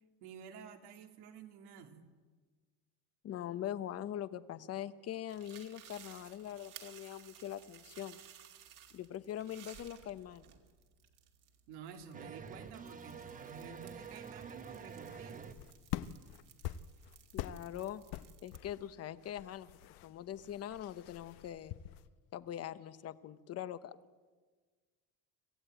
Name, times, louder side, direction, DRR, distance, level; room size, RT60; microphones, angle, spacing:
voice 1, 0.2-2.1 11.7-15.5, right 7 dB, 90° right, 5 dB, 2.6 m, -51 dB
voice 2, 3.2-8.2 8.9-10.5 17.3-18.0 18.4-19.8 20.0-21.8 22.3-24.0, left 11 dB, 40° left, 14 dB, 0.9 m, -42 dB
sound 1, 5.3-18.6, right 9 dB, 55° right, 2.5 m, -58 dB
sound 2, 12.1-15.5, right 6 dB, 20° right, 0.9 m, -48 dB
sound 3, 15.1-22.1, left 13 dB, 85° left, 0.9 m, -46 dB
26.0 x 15.0 x 9.1 m, 1.4 s
cardioid pair, 155°, 38 cm